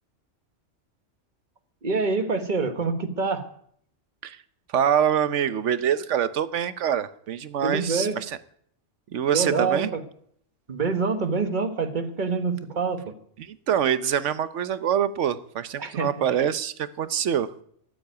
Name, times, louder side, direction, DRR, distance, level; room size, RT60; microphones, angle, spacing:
voice 1, 1.8-3.5 7.6-8.2 9.3-10.0 10.7-13.1 15.8-16.1, right 4 dB, 40° right, 1.4 m, -26 dB
voice 2, 4.7-8.1 9.1-9.9 13.4-17.5, right 9 dB, 75° right, 1.1 m, -25 dB
13.5 x 7.8 x 9.3 m
omnidirectional pair, 1.3 m